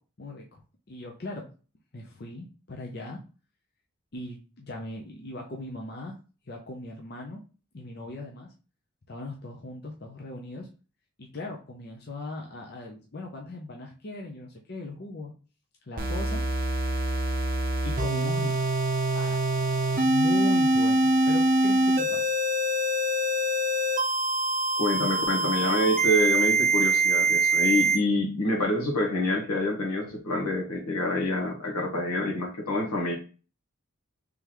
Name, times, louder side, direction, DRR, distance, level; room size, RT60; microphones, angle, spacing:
voice 1, 0.2-0.6 0.9-1.5 1.9-3.2 4.1-6.1 6.5-7.4 7.7-8.5 9.1-10.7 11.2-15.3 15.9-16.4 17.8-18.7 19.1-19.8 20.0-22.3, left 2 dB, 45° left, 0 dB, 0.6 m, -38 dB
sound 1, 16.0-28.0, right 2 dB, 40° right, 0.6 m, -24 dB
voice 2, 24.8-33.1, left 1 dB, 85° left, 0 dB, 1.3 m, -27 dB
3.7 x 3.4 x 3.0 m, 0.35 s
head